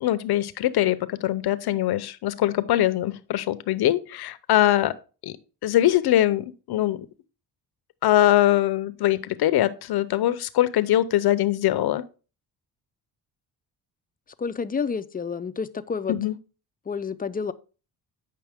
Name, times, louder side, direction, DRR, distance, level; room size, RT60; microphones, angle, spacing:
voice 1, 0.0-4.9 5.2-5.4 5.6-7.1 8.0-12.1 16.1-16.3, left 13 dB, 70° left, 0.8 m, -22 dB
voice 2, 14.4-16.2 16.9-17.5, left 5 dB, 20° left, 0.5 m, -29 dB
8.6 x 5.5 x 3.5 m
cardioid pair, 85°, 40 cm